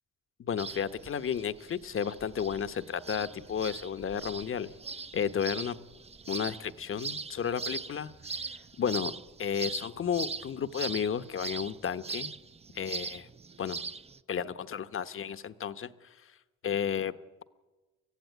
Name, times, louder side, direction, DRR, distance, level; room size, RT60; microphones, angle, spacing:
voice 1, 0.4-4.7 5.1-5.8 6.3-8.1 8.8-9.1 9.4-12.3 12.8-13.3 13.6-13.8 14.3-15.9 16.6-17.1, left 7 dB, 45° left, 13 dB, 1.0 m, -32 dB
sound 1, 0.6-14.2, right 4 dB, 20° right, 0.6 m, -41 dB
23.5 x 15.0 x 9.3 m, 1.3 s
cardioid pair, 90°, 30 cm